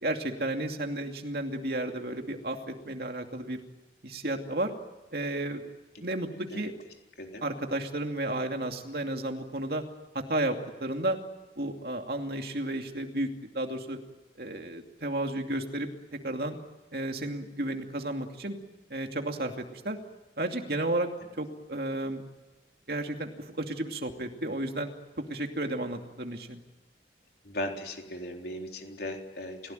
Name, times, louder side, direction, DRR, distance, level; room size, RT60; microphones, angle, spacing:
voice 1, 0.0-3.6 4.0-4.7 5.1-5.6 6.0-6.7 7.4-9.8 10.1-11.2 11.6-13.3 13.5-14.0 14.4-15.9 16.2-16.6 16.9-18.6 18.9-20.0 20.4-21.1 21.4-22.2 22.9-24.9 25.2-26.6, right 1 dB, 55° right, 4 dB, 2.6 m, -32 dB
voice 2, 27.4-29.7, left 1 dB, 60° left, 2 dB, 4.0 m, -37 dB
29.5 x 17.0 x 9.2 m, 1.1 s
head